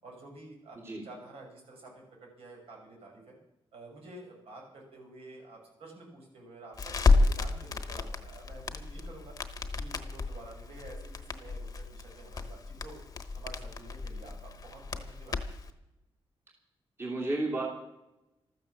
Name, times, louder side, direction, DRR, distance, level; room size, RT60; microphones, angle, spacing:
voice 1, 0.0-3.4 3.7-9.3 9.7-13.0 13.4-15.4, right 2 dB, 75° right, -1 dB, 6.6 m, -50 dB
Crackle, 6.8-15.7, left 3 dB, 35° left, 1.1 m, -31 dB
voice 2, 17.0-17.6, right 2 dB, 25° right, -2 dB, 2.7 m, -32 dB
14.0 x 13.5 x 7.2 m, 0.90 s
wide cardioid pair, 175°, 10 cm